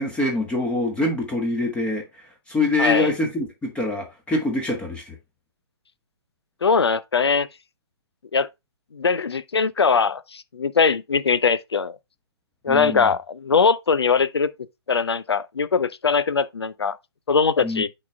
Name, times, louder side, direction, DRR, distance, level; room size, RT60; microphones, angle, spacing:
voice 1, 0.0-5.1 12.7-13.1 17.6-17.8, left 2 dB, 10° left, 1.4 m, -25 dB
voice 2, 2.8-3.1 6.6-7.5 8.3-8.5 8.9-12.0 12.6-14.5 14.9-17.0 17.3-17.9, left 5 dB, 70° left, 0.7 m, -21 dB
8.3 x 4.3 x 3.3 m
figure-of-eight pair, 125°, 14 cm